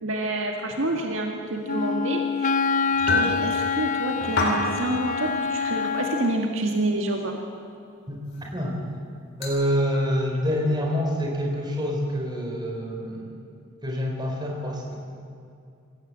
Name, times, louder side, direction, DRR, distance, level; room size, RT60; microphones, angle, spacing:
voice 1, 0.0-2.5 3.1-7.4, right 2 dB, 65° right, 2 dB, 1.9 m, -28 dB
Wind instrument woodwind instrument, 1.7-6.5, left 5 dB, 35° left, 0.5 m, -26 dB
sound 1, 2.9-3.4 4.2-4.6 5.2-5.4 6.2-6.3 8.3-8.4 9.4-9.5, left 3 dB, 55° left, 4.3 m, -25 dB
voice 2, 8.1-8.8 9.4-13.3 13.8-15.0, equal, 20° right, 0 dB, 4.1 m, -27 dB
26.0 x 16.0 x 7.7 m, 2.4 s
head